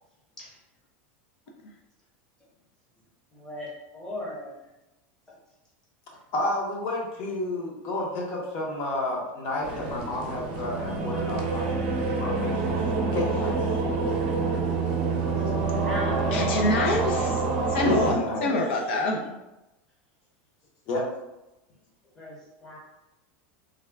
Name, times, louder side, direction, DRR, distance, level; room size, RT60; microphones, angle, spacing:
voice 1, 3.4-3.7 3.9-4.5 15.7-16.4 22.2-22.3 22.6-22.8, left 1 dB, 10° left, -6 dB, 0.8 m, -36 dB
voice 2, 6.3-11.8 12.2-12.9 13.1-13.8 17.8-18.5 20.9-21.0, left 1 dB, 40° left, -1 dB, 0.8 m, -30 dB
sound 1, 9.6-18.1, right 3 dB, 45° right, 0.7 m, -27 dB
voice 3, 16.3-17.4 17.7-19.3, left 2 dB, 80° left, 0 dB, 0.6 m, -26 dB
3.5 x 2.2 x 3.4 m, 0.96 s
supercardioid pair, 175°, 6 cm